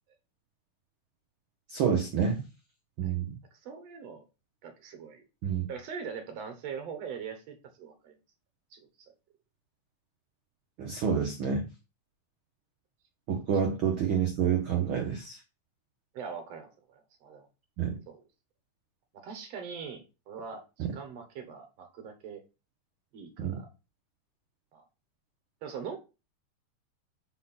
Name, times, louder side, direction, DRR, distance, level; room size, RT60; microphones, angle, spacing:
voice 1, 1.7-2.4 3.0-3.3 5.4-5.7 10.8-11.6 13.3-15.4 17.8-18.0 20.8-20.9 23.4-23.6, right 7 dB, 85° right, 3 dB, 1.1 m, -28 dB
voice 2, 3.6-4.2 4.6-5.2 5.7-8.1 8.7-8.9 16.1-17.5 18.1-18.2 19.1-22.4 23.1-23.7 24.7-24.8 25.6-26.0, right 6 dB, 65° right, 6 dB, 1.9 m, -42 dB
5.2 x 4.3 x 5.5 m, 0.30 s
omnidirectional pair, 3.7 m